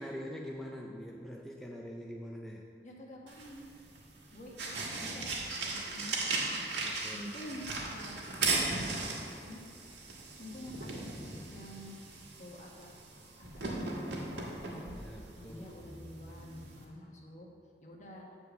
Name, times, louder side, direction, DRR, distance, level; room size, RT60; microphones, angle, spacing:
voice 1, 0.0-2.6 6.8-7.4 14.9-15.7, equal, ahead, -1 dB, 0.4 m, -44 dB
voice 2, 2.8-3.6 4.3-6.6 7.1-9.6 10.4-11.9 12.4-12.9 13.4-17.5 17.8-18.3, equal, 40° left, -1 dB, 1.2 m, -49 dB
sound 1, 3.3-16.8, right 3 dB, 75° right, 1.5 m, -38 dB
8.4 x 4.5 x 6.8 m, 2.5 s
head